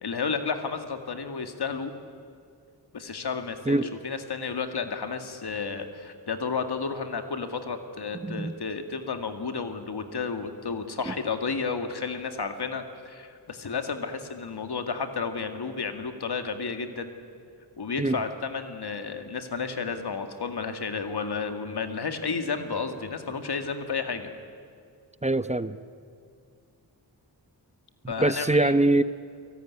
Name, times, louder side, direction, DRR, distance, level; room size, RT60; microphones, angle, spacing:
voice 1, 0.0-1.9 2.9-17.1 17.8-24.3 28.1-28.7, left 5 dB, 75° left, 7 dB, 2.2 m, -32 dB
voice 2, 8.2-8.5 11.1-11.2 18.0-18.2 25.2-25.8 28.2-29.0, right 2 dB, 15° right, 13 dB, 0.8 m, -23 dB
30.0 x 18.0 x 9.7 m, 2.2 s
cardioid pair, 50°, 39 cm